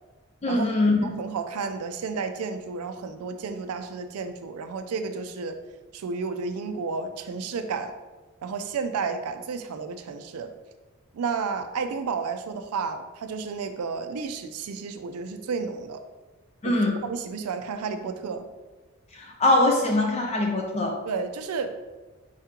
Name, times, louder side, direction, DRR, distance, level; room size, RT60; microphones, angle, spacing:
voice 1, 0.4-1.0 16.6-17.0 19.1-20.9, left 2 dB, 30° left, 2 dB, 0.4 m, -22 dB
voice 2, 1.0-5.6 5.9-7.9 8.4-10.5 11.1-16.0 16.6-18.5 21.1-21.8, right 5 dB, 75° right, 8 dB, 0.4 m, -32 dB
4.7 x 3.6 x 2.8 m, 1.2 s
head